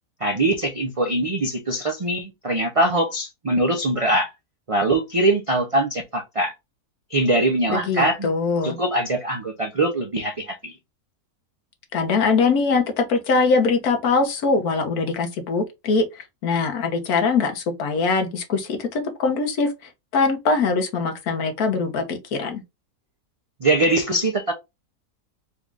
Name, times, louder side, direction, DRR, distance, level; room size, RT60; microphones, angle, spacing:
voice 1, 0.2-4.3 4.7-6.5 7.1-8.3 8.6-10.7 23.6-24.5, right 1 dB, 60° right, 0.3 m, -22 dB
voice 2, 7.7-8.8 11.9-16.0 16.4-19.7 20.1-22.6, left 4 dB, 80° left, 1.5 m, -22 dB
4.2 x 2.5 x 3.3 m
omnidirectional pair, 1.6 m